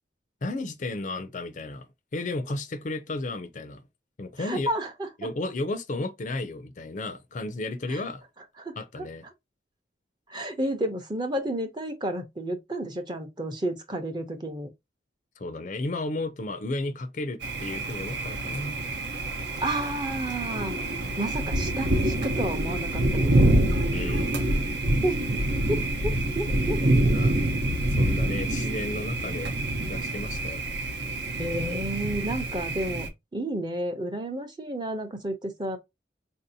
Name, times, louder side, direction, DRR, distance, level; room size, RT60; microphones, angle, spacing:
voice 1, 0.4-3.8 4.2-4.7 5.2-8.2 8.8-9.2 15.4-18.8 23.9-24.4 26.8-27.3 27.9-29.5 29.8-30.6, left 2 dB, 45° left, 0.4 m, -33 dB
voice 2, 4.4-5.1 7.9-8.0 8.6-8.8 10.3-14.7 19.6-20.8 21.2-23.6 25.0-25.4 25.7-27.1 31.4-35.8, right 1 dB, 25° right, 0.6 m, -31 dB
Thunder, 17.4-33.1, right 1 dB, 65° right, 0.7 m, -26 dB
4.0 x 2.7 x 2.6 m
head